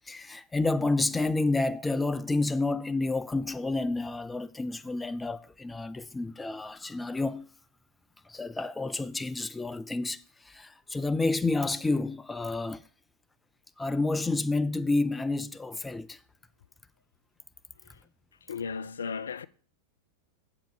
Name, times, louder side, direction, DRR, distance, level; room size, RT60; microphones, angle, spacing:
voice 1, 0.1-7.5 8.2-12.8 13.8-16.2, left 2 dB, 10° left, 0.5 m, -29 dB
voice 2, 18.5-19.5, left 5 dB, 70° left, 0.3 m, -35 dB
7.5 x 5.0 x 7.0 m
figure-of-eight pair, 90°, 0 cm